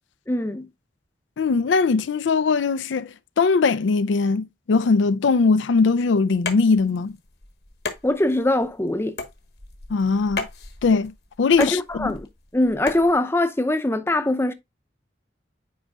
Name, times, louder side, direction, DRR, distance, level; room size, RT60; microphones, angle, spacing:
voice 1, 0.3-0.7 8.0-9.1 11.6-12.3 12.5-14.5, left 1 dB, 15° left, 0.6 m, -22 dB
voice 2, 1.4-3.1 3.4-7.1 9.9-10.5 10.8-11.1 11.4-12.1, left 4 dB, 85° left, 0.4 m, -20 dB
sound 1, 6.3-13.1, left 4 dB, 60° left, 1.2 m, -35 dB
8.7 x 5.1 x 2.3 m
head